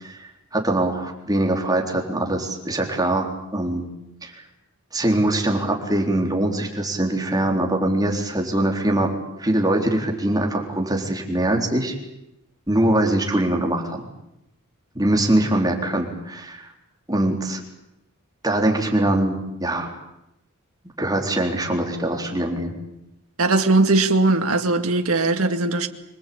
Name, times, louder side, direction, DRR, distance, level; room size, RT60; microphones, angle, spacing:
voice 1, 0.0-3.8 4.2-4.4 4.9-9.1 9.4-11.9 12.7-14.0 15.0-16.7 17.1-17.6 18.4-19.9 21.0-22.7, right 1 dB, 15° right, 1 dB, 3.9 m, -22 dB
voice 2, 23.4-25.9, right 2 dB, 70° right, 6 dB, 2.1 m, -19 dB
26.0 x 21.5 x 8.7 m, 0.85 s
head